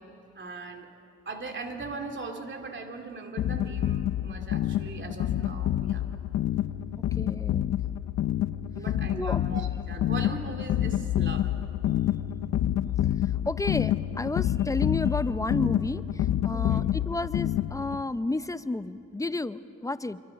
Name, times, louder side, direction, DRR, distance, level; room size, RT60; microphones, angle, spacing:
voice 1, 0.3-0.9 1.3-6.1 8.7-11.5 16.5-16.9, right 3 dB, 40° right, 4 dB, 2.6 m, -39 dB
sound 1, 3.4-18.0, left 12 dB, 65° left, 0.7 m, -28 dB
voice 2, 7.2-7.8 9.2-9.4 13.2-20.2, left 2 dB, 10° left, 13 dB, 0.6 m, -32 dB
27.5 x 23.5 x 5.8 m, 2.8 s
cardioid pair, 90°, 30 cm